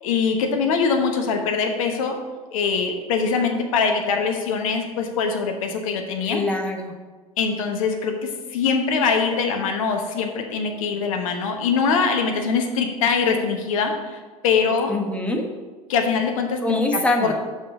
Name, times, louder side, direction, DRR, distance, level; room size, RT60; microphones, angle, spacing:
voice 1, 0.0-2.2 2.5-6.4 7.4-14.9 15.9-17.3, left 5 dB, 65° left, 4 dB, 1.1 m, -23 dB
voice 2, 6.2-6.9 14.9-15.4 16.6-17.3, left 2 dB, 5° left, 2 dB, 1.2 m, -23 dB
6.1 x 5.3 x 6.2 m, 1.4 s
figure-of-eight pair, 70°, 18 cm